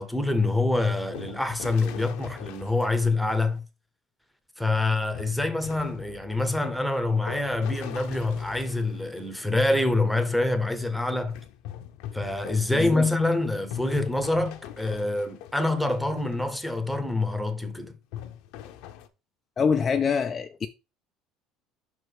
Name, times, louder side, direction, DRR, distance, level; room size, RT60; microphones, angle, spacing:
voice 1, 0.0-3.6 4.6-11.4 12.1-18.0, left 2 dB, ahead, 0.8 m, -26 dB
sound 1, 1.1-3.6 5.1-9.8 11.3-16.5 17.0-17.2 18.1-19.1, left 11 dB, 65° left, 0.8 m, -42 dB
voice 2, 12.7-13.0 19.6-20.7, left 6 dB, 25° left, 0.3 m, -25 dB
5.9 x 4.7 x 4.6 m
cardioid pair, 165°, 0 cm